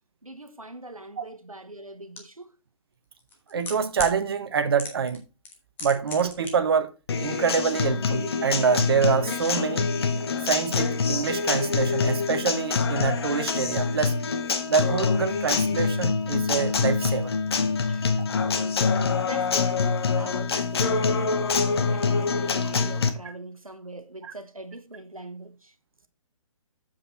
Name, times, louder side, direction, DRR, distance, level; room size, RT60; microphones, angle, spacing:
voice 1, 0.2-2.5 17.9-18.1 19.2-21.3 21.6-25.7, right 2 dB, 85° right, 1.2 m, -42 dB
sound 1, 2.2-2.3 3.2-4.2 4.8-5.2 5.4-6.5 6.8-6.9, left 4 dB, 10° left, 1.2 m, -35 dB
voice 2, 3.5-5.2 5.8-6.9 7.2-9.9 10.4-14.1 14.7-17.3, right 6 dB, 45° right, 1.1 m, -26 dB
Acoustic guitar, 7.1-23.1, left 5 dB, 50° left, 0.9 m, -25 dB
7.5 x 5.3 x 4.2 m
figure-of-eight pair, 135°, 17 cm